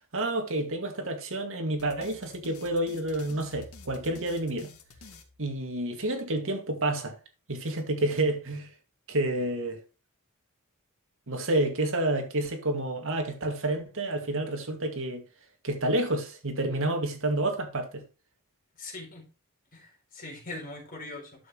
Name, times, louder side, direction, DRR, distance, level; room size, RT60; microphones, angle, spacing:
voice 1, 0.1-4.7 5.4-7.1 7.5-8.7 9.1-9.8 11.3-15.2 15.6-18.0, right 1 dB, 60° right, 2.1 m, -29 dB
sound 1, 1.8-6.1, left 3 dB, 75° left, 2.1 m, -50 dB
voice 2, 18.8-19.2 19.7-21.5, left 2 dB, 40° left, 4.4 m, -41 dB
11.0 x 7.4 x 3.1 m
head